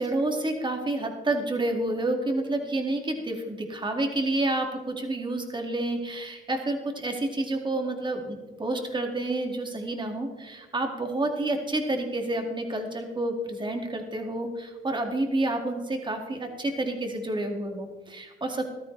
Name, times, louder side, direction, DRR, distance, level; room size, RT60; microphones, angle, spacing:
voice 1, 0.0-18.7, right 2 dB, 25° right, 3 dB, 2.1 m, -29 dB
15.0 x 13.0 x 3.3 m, 1.2 s
cardioid pair, 90°, 20 cm